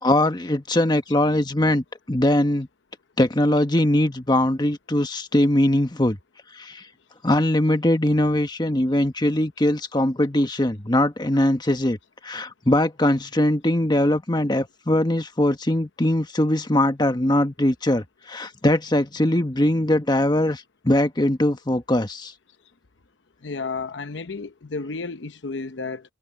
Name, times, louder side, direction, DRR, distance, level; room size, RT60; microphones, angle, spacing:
voice 1, 0.0-2.7 3.2-6.2 6.6-6.8 7.2-12.0 12.2-22.3, left 1 dB, 25° left, 1.2 m, -21 dB
voice 2, 23.4-26.0, left 4 dB, 75° left, 0.8 m, -32 dB
head